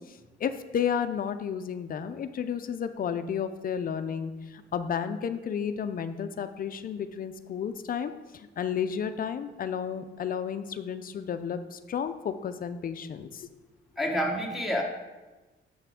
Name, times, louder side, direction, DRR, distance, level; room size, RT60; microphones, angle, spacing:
voice 1, 0.4-13.5, left 7 dB, 45° left, 10 dB, 0.4 m, -32 dB
voice 2, 14.0-14.8, equal, ahead, -1 dB, 1.1 m, -28 dB
7.0 x 5.7 x 3.6 m, 1.2 s
cardioid pair, 90°, 20 cm